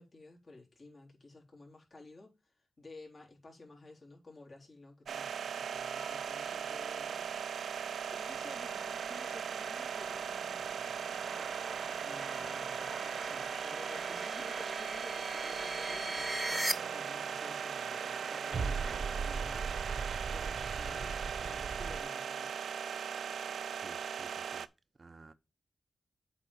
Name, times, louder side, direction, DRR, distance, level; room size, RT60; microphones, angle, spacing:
voice 1, 0.0-10.9 12.0-22.5, left 2 dB, 45° left, 3.8 m, -54 dB
sound 1, 5.1-24.7, right 7 dB, 80° right, 0.4 m, -39 dB
sound 2, 5.8-16.7, right 1 dB, 5° right, 0.9 m, -43 dB
sound 3, 8.3-22.0, right 5 dB, 60° right, 0.9 m, -42 dB
voice 2, 23.8-24.7 25.0-25.3, right 3 dB, 40° right, 0.7 m, -54 dB
8.3 x 4.0 x 5.4 m
cardioid pair, 70°, 0 cm